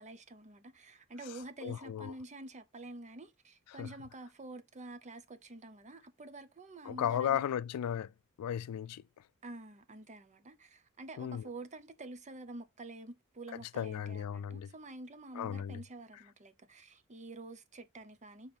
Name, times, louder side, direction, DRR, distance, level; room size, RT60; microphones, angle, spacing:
voice 1, 0.0-7.5 9.4-18.6, right 2 dB, 30° right, 0.8 m, -48 dB
voice 2, 1.6-2.1 3.8-3.9 6.9-8.1 8.4-9.0 11.2-11.4 13.7-14.7 15.4-15.8, left 9 dB, 80° left, 0.3 m, -35 dB
6.9 x 3.2 x 4.3 m
head